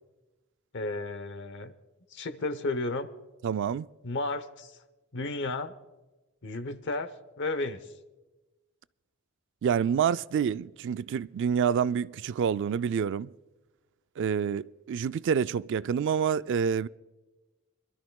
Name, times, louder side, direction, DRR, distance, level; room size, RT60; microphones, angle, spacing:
voice 1, 0.7-1.7 2.1-3.1 4.0-4.7 5.1-5.7 6.4-7.8, left 2 dB, 55° left, 0.9 m, -33 dB
voice 2, 3.4-3.9 9.6-13.3 14.2-16.9, right 7 dB, 60° right, 0.3 m, -27 dB
26.5 x 12.5 x 2.3 m
head